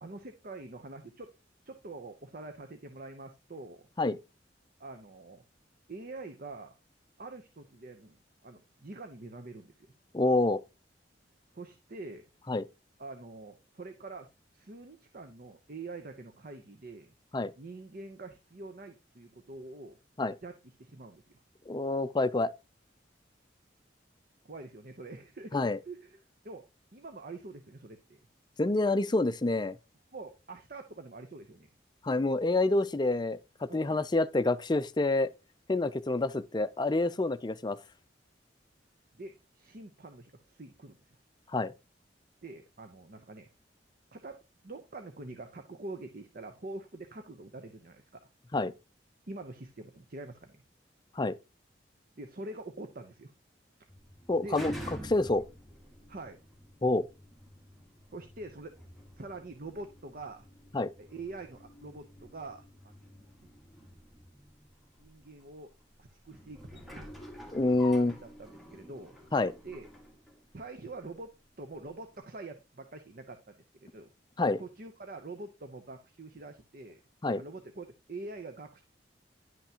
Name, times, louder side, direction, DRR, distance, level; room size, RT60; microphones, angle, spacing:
voice 1, 0.0-1.3 1.6-3.9 4.8-5.4 5.9-6.8 7.2-8.2 8.4-9.9 11.5-12.3 13.0-14.3 14.5-17.1 17.6-20.0 20.4-21.4 24.4-25.6 25.9-26.6 26.9-28.2 30.1-31.7 33.7-34.0 39.1-41.0 42.4-43.5 44.1-48.2 49.3-50.6 52.2-53.3 54.4-54.6 56.1-56.4 58.1-58.7 59.2-60.5 61.0-62.9 63.4-63.5 65.0-65.7 66.0-67.2 68.0-69.2 69.6-69.9 70.5-71.3 71.6-74.1 74.6-77.0 77.4-78.8, right 2 dB, 55° right, 0.8 m, -45 dB
voice 2, 10.1-10.6 12.5-12.6 17.3-17.5 20.2-20.3 21.7-22.5 25.5-25.8 28.6-29.8 32.0-35.3 35.7-37.8 41.5-41.7 48.5-48.7 51.2-51.4 54.3-54.7 55.0-55.4 56.8-57.1 60.7-60.9 67.5-68.1 69.3-69.5 74.4-74.6 77.2-77.4, left 2 dB, 25° left, 0.5 m, -27 dB
sound 1, 53.9-71.2 71.8-71.9, equal, ahead, 1.9 m, -48 dB
11.0 x 5.8 x 2.9 m
head